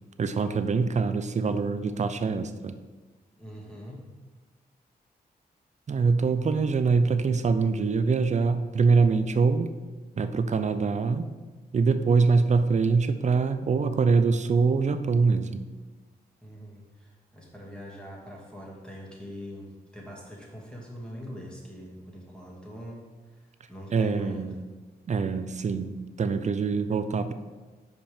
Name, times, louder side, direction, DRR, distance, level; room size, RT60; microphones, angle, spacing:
voice 1, 0.2-2.8 5.9-9.7 10.2-11.3 11.7-15.6 23.9-24.5 25.1-27.3, right 4 dB, 45° right, 10 dB, 0.5 m, -24 dB
voice 2, 3.4-4.0 16.4-23.0 23.3-24.6, equal, 5° left, -4 dB, 2.1 m, -43 dB
5.3 x 5.1 x 5.0 m, 1.3 s
cardioid pair, 65°, 17 cm